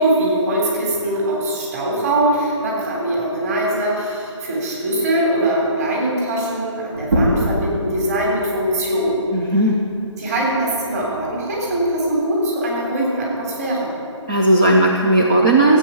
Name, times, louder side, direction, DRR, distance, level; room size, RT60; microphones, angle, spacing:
voice 1, 0.0-9.2 10.2-13.9, right 1 dB, 30° right, -3 dB, 3.5 m, -21 dB
sound 1, 6.9-12.1, equal, 75° right, 4.1 m, -26 dB
voice 2, 9.3-9.8 14.3-15.8, right 1 dB, 15° right, 0 dB, 0.4 m, -15 dB
14.0 x 8.5 x 7.0 m, 2.5 s
hypercardioid pair, 165°, 16 cm